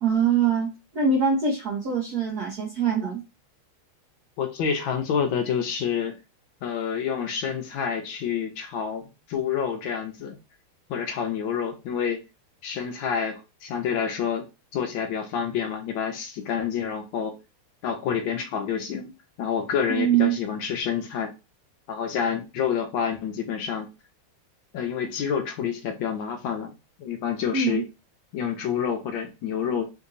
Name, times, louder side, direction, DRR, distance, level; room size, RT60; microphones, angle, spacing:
voice 1, 0.0-3.2 19.9-20.4 27.5-27.8, right 6 dB, 70° right, 0.9 m, -23 dB
voice 2, 4.4-6.2 6.6-10.4 10.9-12.2 12.6-14.5 14.7-17.4 17.8-19.1 19.4-21.3 21.9-23.9 24.7-26.7 27.0-27.8 28.3-29.8, left 7 dB, 75° left, 1.2 m, -28 dB
3.8 x 2.7 x 2.5 m
omnidirectional pair, 2.4 m